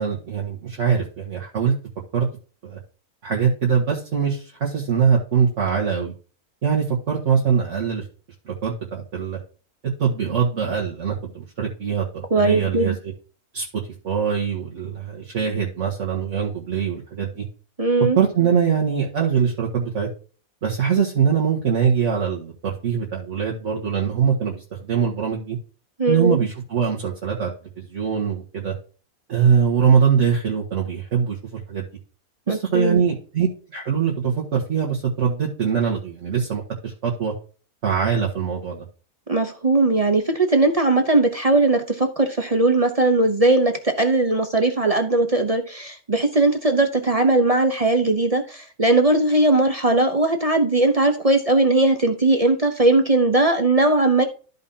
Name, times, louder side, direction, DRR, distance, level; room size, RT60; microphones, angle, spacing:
voice 1, 0.0-1.7 2.1-2.3 2.6-2.8 3.2-6.1 6.6-8.1 8.5-9.4 10.0-12.9 13.5-17.5 18.2-20.1 20.6-25.6 26.1-27.5 27.8-28.7 29.3-31.9 32.5-37.3 37.8-38.9, right 7 dB, 50° right, -3 dB, 1.9 m, -22 dB
voice 2, 12.3-12.9 17.8-18.2 26.0-26.4 32.5-33.0 39.3-54.2, right 2 dB, 30° right, 6 dB, 0.7 m, -19 dB
13.5 x 5.4 x 2.8 m, 0.37 s
omnidirectional pair, 1.6 m